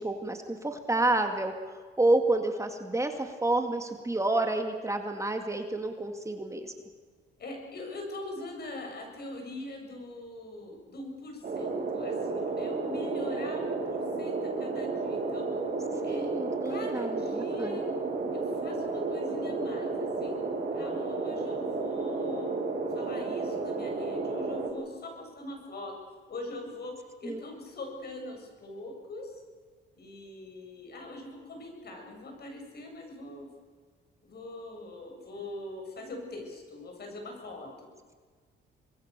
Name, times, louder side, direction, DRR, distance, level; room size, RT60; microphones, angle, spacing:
voice 1, 0.0-6.7 16.0-17.8 27.2-27.4, right 2 dB, 15° right, 5 dB, 2.3 m, -29 dB
voice 2, 7.4-15.5 16.0-16.3 16.6-17.8 18.3-20.3 20.7-22.5 22.9-25.9 26.3-26.9 27.2-29.4 29.9-33.5 34.2-37.9, left 2 dB, 55° left, 3 dB, 7.6 m, -42 dB
sound 1, 11.4-24.7, right 3 dB, 45° right, 7.7 m, -32 dB
26.5 x 21.0 x 6.9 m, 1.6 s
cardioid pair, 90°, 20 cm